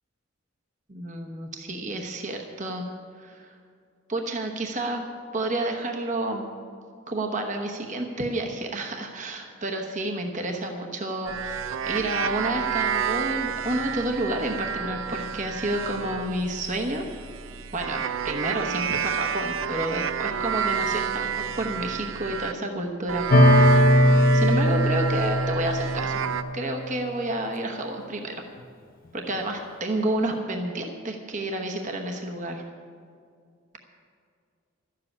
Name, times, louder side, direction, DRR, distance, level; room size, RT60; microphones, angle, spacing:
voice 1, 0.9-2.9 3.2-3.5 4.1-5.1 5.3-6.5 7.1-17.0 17.7-23.2 23.9-26.2 26.5-28.3 29.1-32.6, right 1 dB, 40° right, 2 dB, 1.0 m, -30 dB
sound 1, 11.3-22.6 23.1-26.4, right 7 dB, 75° right, 0.5 m, -30 dB
sound 2, 23.3-26.8, equal, 45° left, 0.8 m, -19 dB
12.5 x 7.6 x 9.8 m, 2.3 s
head